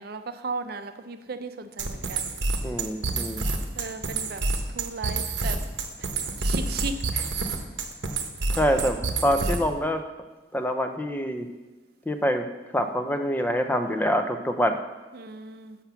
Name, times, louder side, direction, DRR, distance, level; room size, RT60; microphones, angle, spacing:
voice 1, 0.0-2.4 3.8-4.4 4.7-5.6 6.0-6.1 6.4-7.3 15.1-15.8, right 3 dB, 55° right, 9 dB, 0.6 m, -35 dB
sound 1, 1.8-9.8, right 3 dB, 85° right, 0.9 m, -28 dB
voice 2, 2.6-3.4 8.6-10.0 10.5-11.5 12.1-12.5 12.7-14.8, equal, 10° left, 7 dB, 0.4 m, -25 dB
5.9 x 5.8 x 6.8 m, 1.2 s
head